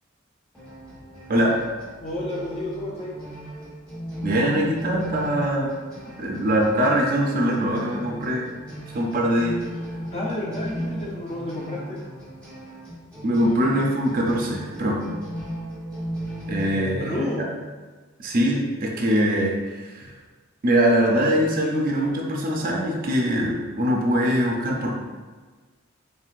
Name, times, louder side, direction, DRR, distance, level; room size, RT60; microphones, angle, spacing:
sound 1, 0.5-16.6, equal, 5° left, 1.2 m, -36 dB
voice 1, 2.0-3.1 10.1-12.0 16.7-17.4, left 1 dB, 35° left, -4 dB, 0.7 m, -30 dB
voice 2, 4.2-5.7 6.2-8.5 8.9-9.6 13.2-15.0 16.5-17.5 18.2-20.1 20.6-24.9, equal, 45° right, 0 dB, 0.5 m, -22 dB
4.5 x 3.2 x 2.4 m, 1.4 s
head